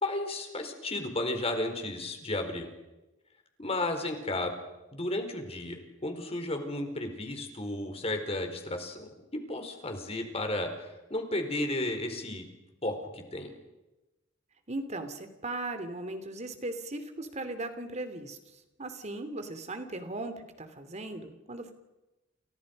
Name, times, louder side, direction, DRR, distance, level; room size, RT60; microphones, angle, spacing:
voice 1, 0.0-2.7 3.6-4.5 4.9-9.1 9.5-10.7 11.1-12.5 12.8-13.5, left 2 dB, 30° left, 5 dB, 4.6 m, -33 dB
voice 2, 14.7-18.4 18.8-21.7, right 2 dB, 35° right, 9 dB, 3.0 m, -38 dB
29.5 x 29.0 x 5.5 m, 1.0 s
head